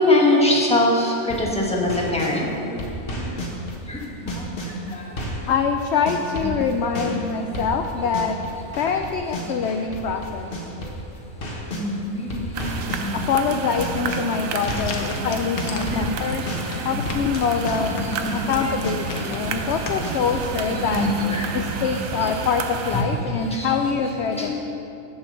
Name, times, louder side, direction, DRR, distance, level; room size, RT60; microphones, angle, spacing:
voice 1, 0.0-2.7 3.1-3.3 3.9-4.0 4.3-4.4 4.9-5.0 11.7-13.2 14.7-14.9 15.2-15.3 15.7-16.1 16.8-16.9 18.1-18.7 19.3-19.7 20.7-21.8 22.2-22.3 23.4-24.0 24.3-24.5, left 1 dB, 5° left, -3 dB, 1.3 m, -24 dB
sound 1, 1.1-2.4 2.8-5.5 5.8-11.9 12.3-21.1, equal, 40° left, 1.4 m, -32 dB
voice 2, 5.5-8.4 8.8-10.5 13.1-16.5 16.8-18.0 18.3-21.1 21.5-24.5, left 6 dB, 65° left, 5 dB, 0.7 m, -24 dB
sound 2, 12.5-23.0, right 5 dB, 70° right, 1.0 m, -31 dB
sound 3, 14.3-20.9, left 4 dB, 85° left, 1.3 m, -35 dB
8.4 x 7.2 x 6.3 m, 2.9 s
omnidirectional pair, 1.5 m